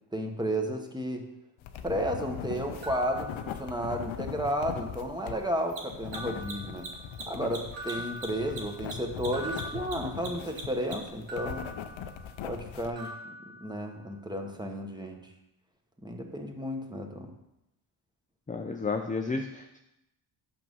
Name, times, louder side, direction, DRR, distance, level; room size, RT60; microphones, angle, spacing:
voice 1, 0.1-1.2 1.8-6.9 7.3-11.7 12.4-13.3 13.6-15.3 16.0-17.3, equal, 10° right, 3 dB, 1.2 m, -33 dB
sound 1, 1.6-12.9, left 8 dB, 85° left, 0.7 m, -40 dB
Mechanisms, 2.5-2.6 5.6-11.2, right 3 dB, 90° right, 1.5 m, -41 dB
sound 2, 2.8-4.1 4.5-5.3 6.1-7.4 7.7-10.7 11.3-12.7 13.0-14.3, right 1 dB, 70° right, 2.2 m, -44 dB
voice 2, 18.5-19.8, left 4 dB, 15° left, 4 dB, 0.6 m, -32 dB
6.2 x 5.9 x 5.5 m, 0.88 s
cardioid pair, 70°, 46 cm